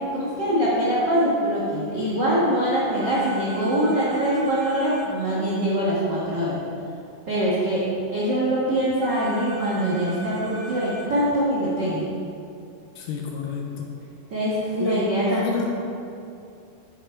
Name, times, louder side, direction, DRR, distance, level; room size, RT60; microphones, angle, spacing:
voice 1, 0.1-6.6 7.3-7.8 8.1-12.1 14.3-15.7, right 1 dB, 75° right, -8 dB, 1.0 m, -23 dB
sound 1, 3.0-5.1 9.0-11.1, equal, 60° right, 1.8 m, -40 dB
voice 2, 13.0-13.9 14.8-15.0 15.2-15.7, left 6 dB, 75° left, 1 dB, 2.1 m, -29 dB
8.6 x 7.1 x 4.4 m, 2.5 s
omnidirectional pair, 4.2 m